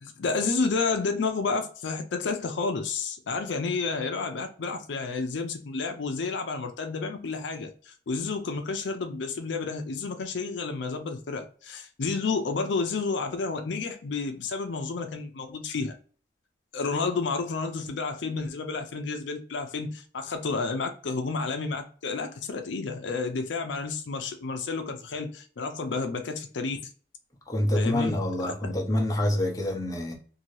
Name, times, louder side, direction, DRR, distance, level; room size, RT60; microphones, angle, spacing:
voice 1, 0.0-15.9 16.7-26.8 27.7-28.6, left 4 dB, 70° left, 0.5 m, -30 dB
voice 2, 27.5-30.1, left 1 dB, 20° left, 0.6 m, -26 dB
2.7 x 2.6 x 3.0 m
head